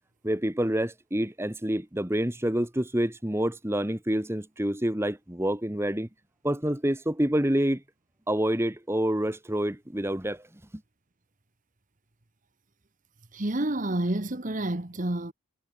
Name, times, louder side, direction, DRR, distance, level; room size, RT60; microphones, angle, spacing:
voice 1, 0.2-6.1 6.4-7.8 8.3-10.4, right 1 dB, 10° right, 1.2 m, -27 dB
voice 2, 13.3-15.3, right 1 dB, 35° right, 1.3 m, -29 dB
head